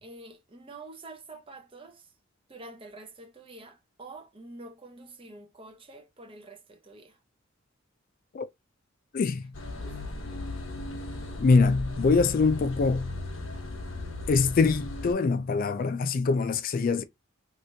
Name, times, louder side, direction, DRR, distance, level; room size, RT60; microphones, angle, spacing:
voice 1, 0.0-2.1 2.5-7.2 9.8-10.0, right 2 dB, 25° right, 0.6 m, -47 dB
voice 2, 9.1-9.5 11.4-13.2 14.3-17.0, left 4 dB, 45° left, 0.3 m, -24 dB
sound 1, 9.5-15.1, left 2 dB, 75° left, 1.1 m, -37 dB
3.2 x 3.0 x 2.6 m
head